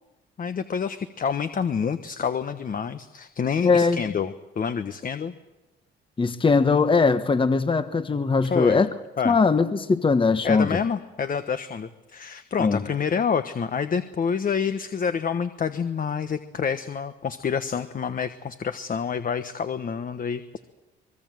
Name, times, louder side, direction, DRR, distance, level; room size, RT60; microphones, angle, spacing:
voice 1, 0.4-5.3 8.5-8.8 9.2-9.4 10.4-20.4, left 6 dB, 45° left, 10 dB, 1.3 m, -28 dB
voice 2, 3.6-4.0 6.2-8.9 9.2-10.8 12.6-12.8, left 4 dB, 25° left, 10 dB, 1.2 m, -20 dB
24.5 x 22.0 x 7.8 m, 1.0 s
cardioid pair, 90°, 20 cm